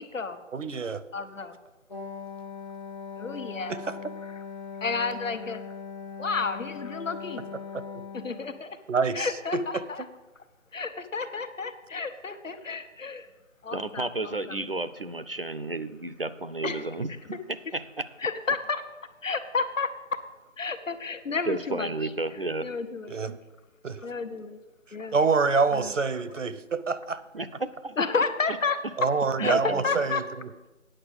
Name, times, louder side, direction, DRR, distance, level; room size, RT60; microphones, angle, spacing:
voice 1, 0.0-0.4 1.1-1.6 3.1-3.8 4.2-4.4 4.8-5.6 6.2-7.5 8.1-8.8 9.1-10.0 10.7-13.3 13.6-14.7 16.6-16.8 18.2-18.8 19.2-20.2 20.6-21.9 22.6-23.2 24.0-24.6 24.9-25.2 25.7-25.9 28.0-28.8 29.4-30.2, left 4 dB, 75° left, 9 dB, 1.2 m, -31 dB
voice 2, 0.5-1.0 3.7-3.8 8.9-9.3 9.5-9.8 23.1-23.4 23.8-24.0 25.1-27.2 29.0-30.2, right 4 dB, 70° right, 13 dB, 0.8 m, -26 dB
Wind instrument woodwind instrument, 1.9-8.7, left 6 dB, 35° left, 0.9 m, -40 dB
voice 3, 13.7-18.1 21.5-22.7 27.3-28.0 29.4-30.0, right 2 dB, 50° right, 12 dB, 0.5 m, -32 dB
8.9 x 6.5 x 7.8 m, 1.1 s
figure-of-eight pair, 175°, 38 cm